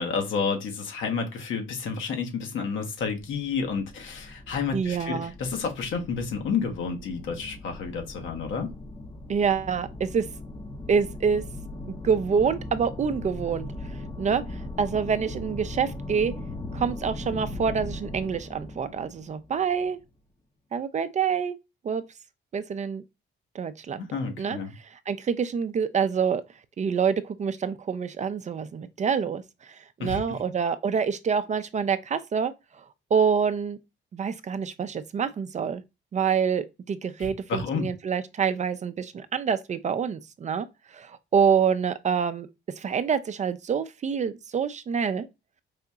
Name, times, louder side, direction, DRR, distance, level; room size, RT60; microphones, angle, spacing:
voice 1, 0.0-8.7 24.0-24.7 30.0-30.4 37.2-37.9, left 5 dB, 75° left, 1.1 m, -30 dB
sound 1, 3.0-20.0, left 1 dB, 20° left, 0.7 m, -39 dB
voice 2, 4.7-5.3 9.3-10.3 10.9-11.4 11.9-13.7 14.2-16.3 16.7-20.0 20.7-21.6 21.8-22.0 22.5-23.0 23.5-24.0 24.4-24.6 24.8-26.4 26.8-32.5 32.8-32.9 33.1-33.8 34.1-35.8 36.1-42.5 42.8-45.3, right 6 dB, 35° right, 0.4 m, -26 dB
4.8 x 2.7 x 2.3 m
cardioid pair, 90°, 20 cm